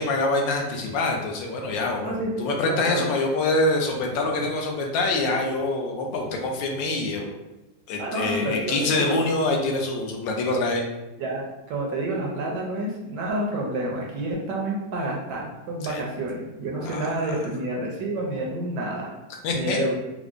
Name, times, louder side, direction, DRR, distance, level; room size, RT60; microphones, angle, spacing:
voice 1, 0.0-7.3 7.9-10.8 15.8-16.0 16.8-17.4 19.4-19.8, left 2 dB, 80° left, 1 dB, 1.3 m, -25 dB
voice 2, 2.7-3.1 8.0-9.2 11.2-19.1 19.5-20.0, right 1 dB, 70° right, -1 dB, 1.2 m, -29 dB
4.7 x 2.1 x 2.4 m, 0.99 s
omnidirectional pair, 2.0 m